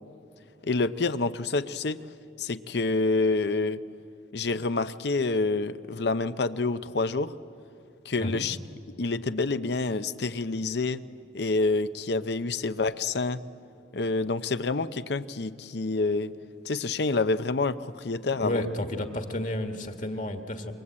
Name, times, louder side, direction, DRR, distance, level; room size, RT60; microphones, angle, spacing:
voice 1, 0.6-2.0 2.4-3.8 4.3-7.3 8.1-8.6 9.0-11.0 11.3-13.4 13.9-16.3 16.6-18.6, left 3 dB, 65° left, 12 dB, 0.7 m, -27 dB
voice 2, 18.3-20.7, left 1 dB, 45° left, 6 dB, 1.7 m, -31 dB
28.0 x 23.5 x 8.7 m, 2.5 s
head